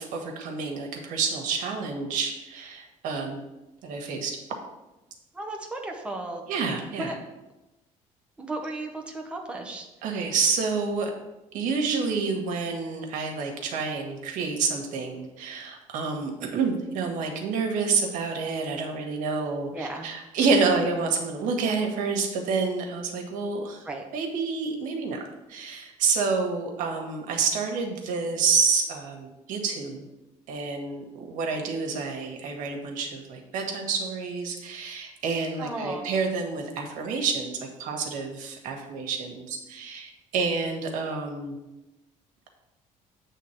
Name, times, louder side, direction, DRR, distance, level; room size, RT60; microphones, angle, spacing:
voice 1, 0.0-3.4 3.8-4.4 6.5-7.1 10.0-11.1 11.5-23.9 24.1-25.2 25.5-30.1 30.5-41.6, right 4 dB, 80° right, 3 dB, 1.5 m, -28 dB
voice 2, 5.3-6.4 7.0-7.1 8.4-9.9 19.7-20.1 23.8-24.0 35.6-36.1, right 2 dB, 10° right, 1 dB, 0.9 m, -34 dB
8.3 x 3.6 x 5.9 m, 0.99 s
cardioid pair, 150°, 13 cm